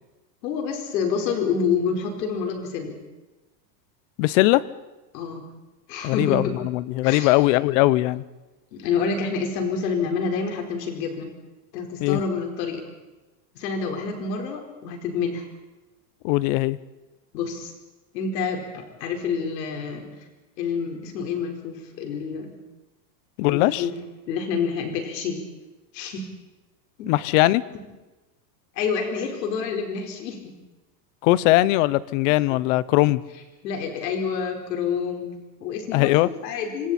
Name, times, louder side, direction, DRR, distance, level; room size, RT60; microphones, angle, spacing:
voice 1, 0.4-3.0 5.1-5.4 5.9-6.6 7.0-7.3 8.7-11.3 11.7-12.8 13.5-15.4 17.3-17.7 18.1-20.1 20.6-22.6 23.5-23.9 24.3-25.4 25.9-26.3 27.0-27.1 28.7-30.5 33.6-36.9, left 5 dB, 75° left, 2 dB, 4.8 m, -28 dB
voice 2, 4.2-4.6 6.0-8.2 12.0-12.2 16.2-16.8 23.4-23.8 27.1-27.6 31.2-33.2 35.9-36.3, left 18 dB, 50° left, 19 dB, 0.9 m, -20 dB
27.0 x 25.5 x 4.4 m, 1.1 s
supercardioid pair, 155°, 50 cm